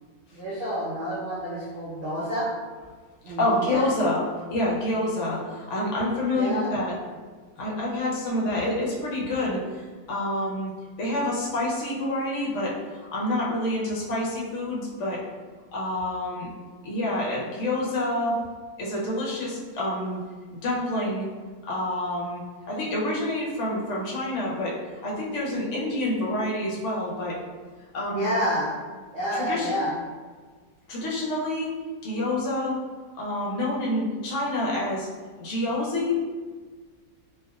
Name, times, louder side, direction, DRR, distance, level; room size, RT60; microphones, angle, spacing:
voice 1, 0.3-2.5 3.2-3.8 6.3-6.7 28.0-28.7 29.1-30.0, equal, 90° right, -10 dB, 0.4 m, -29 dB
voice 2, 3.4-4.2 4.5-6.9 7.6-10.7 11.0-15.2 15.7-16.5 16.8-18.4 18.8-20.2 20.6-21.2 21.7-24.8 25.0-27.4 27.9-28.3 29.3-29.7 30.9-31.7 32.0-32.8 33.1-35.1 35.4-36.1, left 1 dB, 60° left, -5 dB, 0.8 m, -27 dB
3.3 x 2.6 x 2.3 m, 1.5 s
omnidirectional pair, 2.1 m